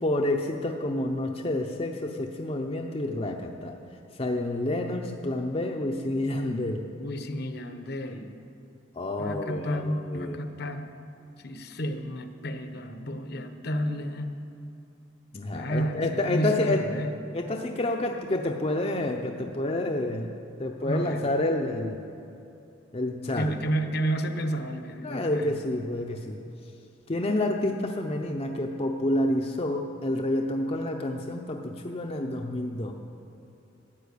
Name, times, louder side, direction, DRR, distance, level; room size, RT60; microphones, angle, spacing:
voice 1, 0.0-3.7 4.2-6.8 9.0-10.4 15.3-16.8 17.3-20.3 20.6-22.0 22.9-23.5 25.0-26.4 27.1-32.9, left 1 dB, 30° left, 2 dB, 0.7 m, -29 dB
voice 2, 7.0-8.3 9.2-10.9 11.4-14.4 15.5-17.2 20.8-21.2 23.3-25.5, right 1 dB, 55° left, 8 dB, 1.0 m, -31 dB
13.0 x 8.8 x 8.4 m, 2.7 s
head